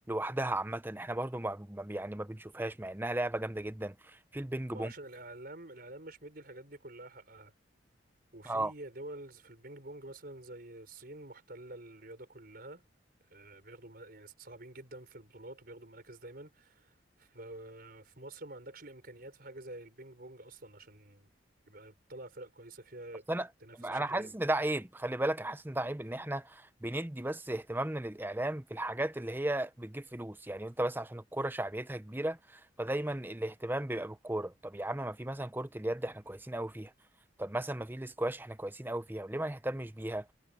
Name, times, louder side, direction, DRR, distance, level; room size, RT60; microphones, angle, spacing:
voice 1, 0.1-4.9 8.5-8.7 23.3-23.5 23.7-36.9 37.4-40.3, right 1 dB, 10° right, 0.7 m, -35 dB
voice 2, 4.7-7.5 8.3-12.8 13.3-21.3 21.7-23.2 23.6-24.3, right 1 dB, 50° right, 5.2 m, -48 dB
head